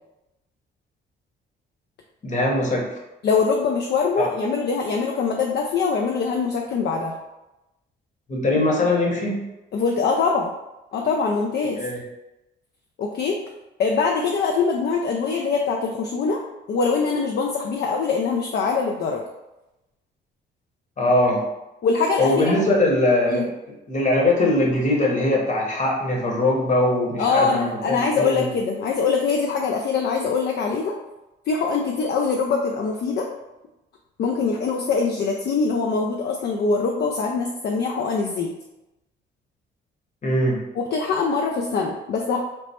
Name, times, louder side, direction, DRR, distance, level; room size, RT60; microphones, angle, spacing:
voice 1, 2.2-2.9 4.2-4.3 8.3-9.4 11.7-12.0 21.0-21.4 22.2-23.5 23.9-28.5 40.2-40.6, left 1 dB, 40° left, -1 dB, 1.0 m, -21 dB
voice 2, 3.2-7.2 9.7-10.5 10.9-11.8 13.0-13.4 13.8-16.4 16.7-19.2 21.8-22.6 23.3-23.4 27.2-31.0 31.5-33.3 34.2-38.5 40.8-42.4, left 4 dB, 55° left, 1 dB, 0.4 m, -23 dB
3.3 x 2.0 x 4.2 m, 0.96 s
cardioid pair, 90°, 20 cm